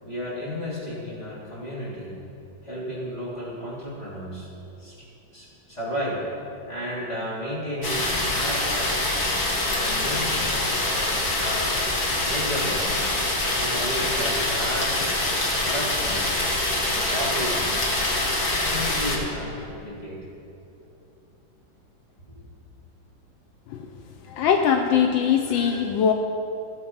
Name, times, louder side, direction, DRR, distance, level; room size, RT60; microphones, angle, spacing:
voice 1, 0.0-2.2 2.6-4.5 4.8-5.1 5.3-6.3 6.7-9.0 9.7-11.8 12.2-12.9 13.5-15.0 15.6-16.5 16.8-17.9 18.5-20.3 22.3-22.4, equal, 20° left, -7 dB, 3.3 m, -33 dB
sound 1, 7.8-19.2, left 2 dB, 50° left, 2.1 m, -25 dB
voice 2, 24.3-26.1, left 7 dB, 80° left, 4 dB, 1.4 m, -21 dB
16.0 x 7.6 x 5.7 m, 2.8 s
omnidirectional pair, 2.1 m